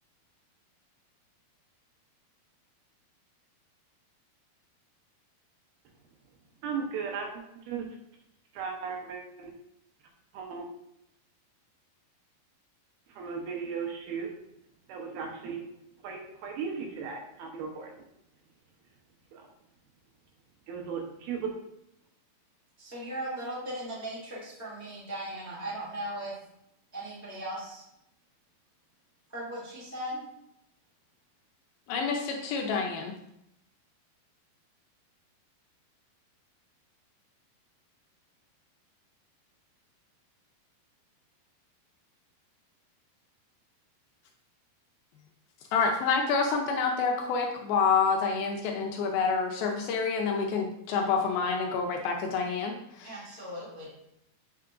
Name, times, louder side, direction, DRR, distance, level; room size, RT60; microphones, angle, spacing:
voice 1, 6.6-7.9 8.5-9.5 10.3-10.7 13.1-14.3 14.9-15.6 16.0-17.9 19.3-19.5 20.7-21.5, right 6 dB, 75° right, 2 dB, 2.6 m, -36 dB
voice 2, 22.8-26.3 26.9-27.8 29.3-30.3 53.0-53.9, right 1 dB, 10° left, -7 dB, 0.6 m, -38 dB
voice 3, 31.9-33.1 45.7-53.1, left 5 dB, 80° left, 2 dB, 2.3 m, -28 dB
7.6 x 5.6 x 2.5 m, 0.80 s
omnidirectional pair, 4.7 m